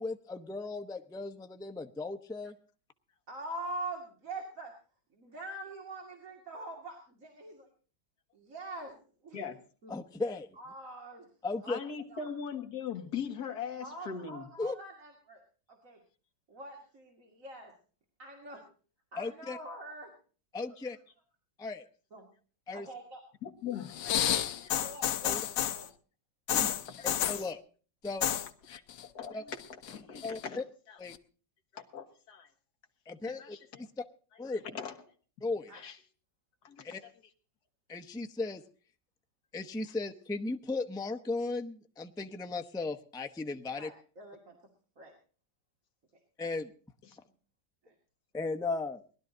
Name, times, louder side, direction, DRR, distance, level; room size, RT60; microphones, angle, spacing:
voice 1, 0.0-2.5 9.9-10.5 11.4-11.8 14.6-14.7 19.2-19.6 20.5-21.0 21.6-21.8 22.7-22.9 25.3-25.4 26.5-26.7 27.0-27.6 28.0-28.3 29.3-29.4 30.2-30.4 31.0-31.1 33.1-33.6 34.0-34.1 34.4-34.6 35.4-35.7 36.8-37.0 37.9-38.6 39.5-43.9 46.4-46.7 48.3-49.0, left 3 dB, 5° left, 6 dB, 0.5 m, -36 dB
voice 2, 3.3-4.8 5.1-7.7 8.3-9.4 9.8-9.9 10.6-11.3 11.6-12.3 13.8-15.4 15.7-16.0 16.5-17.8 18.2-18.6 19.1-20.1 20.6-21.0 22.1-22.3 22.7-23.2 24.7-25.9 26.6-26.7 28.3-28.4 33.3-33.4 35.7-35.8 36.9-37.0 43.7-44.6 45.0-45.1 47.8-47.9, right 2 dB, 45° right, 0 dB, 2.8 m, -44 dB
voice 3, 11.7-14.5 20.8-20.9 23.4-24.7 26.7-27.1 28.7-31.0 31.7-32.5 33.3-33.9 34.5-35.0 35.7-36.0 36.6-37.1 39.9-40.0 47.0-47.2, left 7 dB, 60° left, 4 dB, 2.1 m, -41 dB
sound 1, 23.9-25.9 26.5-27.5 28.1-28.5 28.7-29.3 29.6-30.4 31.1-31.2, left 10 dB, 85° left, 1.5 m, -30 dB
20.0 x 12.0 x 3.9 m, 0.39 s
omnidirectional pair, 1.9 m